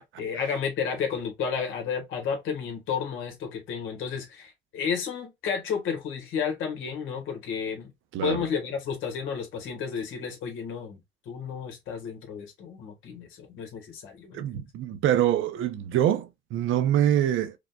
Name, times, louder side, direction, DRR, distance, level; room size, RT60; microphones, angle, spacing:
voice 1, 0.2-7.9 8.2-11.0 11.2-14.4, left 6 dB, 85° left, 1.5 m, -32 dB
voice 2, 14.3-17.5, right 11 dB, 80° right, 0.6 m, -25 dB
4.9 x 2.3 x 2.3 m
cardioid pair, 90°, 20 cm